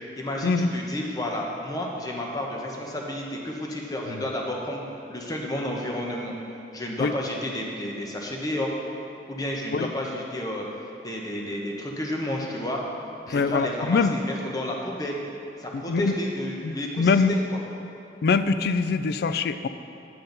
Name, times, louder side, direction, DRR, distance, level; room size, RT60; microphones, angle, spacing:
voice 1, 0.2-4.8 5.1-6.3 6.7-8.7 9.3-10.6 11.0-12.8 13.3-15.2 15.6-17.6, left 1 dB, 20° left, -1 dB, 0.9 m, -31 dB
voice 2, 13.3-14.2 15.7-16.1 16.6-17.3 18.2-19.7, left 4 dB, 60° left, 11 dB, 0.3 m, -23 dB
8.7 x 7.7 x 3.9 m, 2.7 s
head